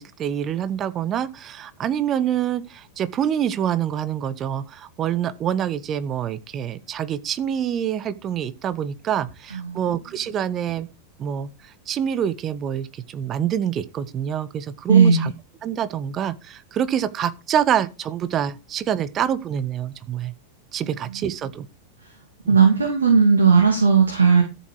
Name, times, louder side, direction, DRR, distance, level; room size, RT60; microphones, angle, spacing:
voice 1, 0.0-10.9 11.2-15.3 15.6-20.3 20.7-21.7 22.4-22.6, right 9 dB, 30° right, 1.1 m, -26 dB
voice 2, 9.5-9.9 14.9-15.3 21.1-21.2 22.5-24.4, right 5 dB, 75° right, 2.6 m, -16 dB
14.0 x 7.5 x 4.8 m
figure-of-eight pair, 90°, 0 cm